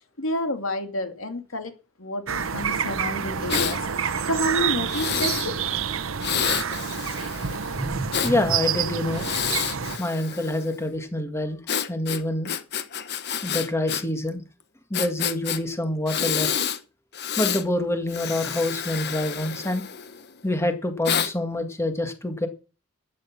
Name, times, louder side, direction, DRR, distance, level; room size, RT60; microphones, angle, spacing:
voice 1, 0.2-1.7 2.0-3.8 4.2-5.3, left 1 dB, 75° left, 6 dB, 2.4 m, -29 dB
sound 1, 2.3-10.0, right 7 dB, 75° right, 0.9 m, -28 dB
Breathing, 3.5-3.8 4.9-5.5 6.2-8.3 9.1-10.7 11.7-14.0 14.3-14.4 14.9-15.6 16.1-16.8 17.1-17.6 18.1-20.3 21.0-21.3, left 8 dB, 55° left, 1.2 m, -29 dB
voice 2, 7.8-9.2 10.0-11.6 11.9-12.5 13.4-14.4 14.9-16.5 17.4-19.8 20.4-22.5, left 1 dB, 15° left, 6 dB, 1.8 m, -26 dB
12.5 x 9.3 x 6.0 m, 0.34 s
head